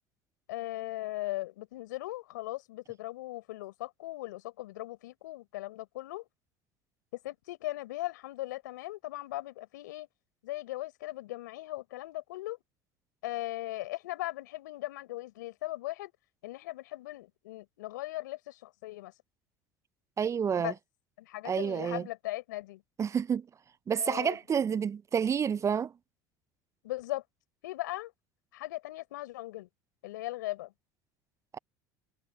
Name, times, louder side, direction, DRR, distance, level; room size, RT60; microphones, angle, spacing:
voice 1, 0.5-6.2 7.1-10.1 10.4-12.6 13.2-16.1 16.4-19.1 20.6-20.7 21.2-22.8 24.0-24.4 26.8-27.2 27.6-28.1 28.5-29.7 30.0-30.7, left 17 dB, 80° left, 5.9 m, -38 dB
voice 2, 20.2-20.7 21.4-22.0 23.0-23.5 23.9-25.9 31.5-31.6, right 7 dB, 30° right, 0.4 m, -29 dB
hypercardioid pair, 75°, 10 cm